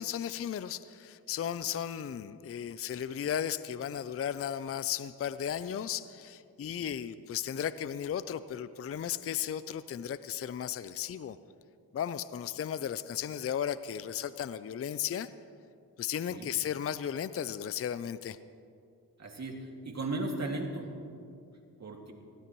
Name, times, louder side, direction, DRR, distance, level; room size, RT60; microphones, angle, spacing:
voice 1, 0.0-11.4 11.9-15.3 16.0-18.4, left 9 dB, 35° left, 14 dB, 0.5 m, -35 dB
voice 2, 19.2-20.9 21.8-22.1, right 2 dB, 40° right, 1 dB, 2.3 m, -36 dB
19.0 x 16.0 x 3.1 m, 2.4 s
cardioid pair, 70°, 40 cm